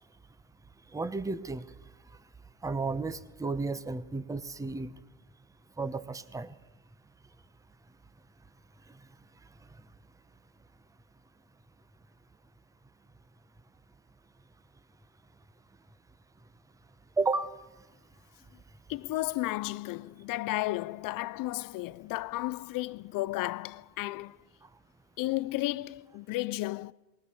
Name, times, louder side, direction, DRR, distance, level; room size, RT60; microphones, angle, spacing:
voice 1, 0.9-1.6 2.6-4.9 5.8-6.5 17.2-17.5, right 3 dB, 5° right, 0.9 m, -32 dB
voice 2, 18.9-24.4 25.2-26.9, left 18 dB, 50° left, 0.6 m, -33 dB
20.0 x 19.0 x 7.0 m
supercardioid pair, 95°, 44 cm